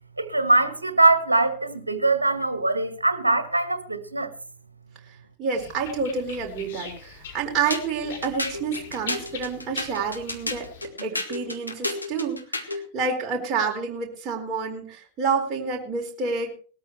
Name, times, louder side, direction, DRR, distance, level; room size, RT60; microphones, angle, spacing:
voice 1, 0.2-4.3, right 2 dB, 80° right, 1.6 m, -22 dB
voice 2, 5.4-10.7 11.0-16.5, right 5 dB, 30° right, 4.2 m, -28 dB
sound 1, 5.5-10.8, left 5 dB, 60° left, 5.4 m, -43 dB
sound 2, 7.7-12.9, left 2 dB, 85° left, 1.9 m, -32 dB
20.0 x 13.5 x 3.3 m
figure-of-eight pair, 90°, 0 cm